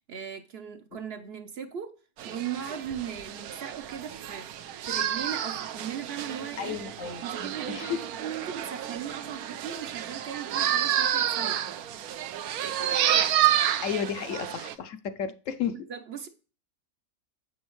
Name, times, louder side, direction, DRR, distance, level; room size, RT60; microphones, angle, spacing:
voice 1, 0.0-2.0 2.2-6.8 7.2-7.9 8.2-11.7 15.9-16.3, right 8 dB, 55° right, 0.8 m, -38 dB
sound 1, 2.2-14.7, right 11 dB, 80° right, 1.1 m, -30 dB
voice 2, 6.6-8.0 12.8-13.1 13.8-15.7, left 8 dB, 65° left, 0.9 m, -33 dB
8.0 x 6.2 x 3.1 m
omnidirectional pair, 1.6 m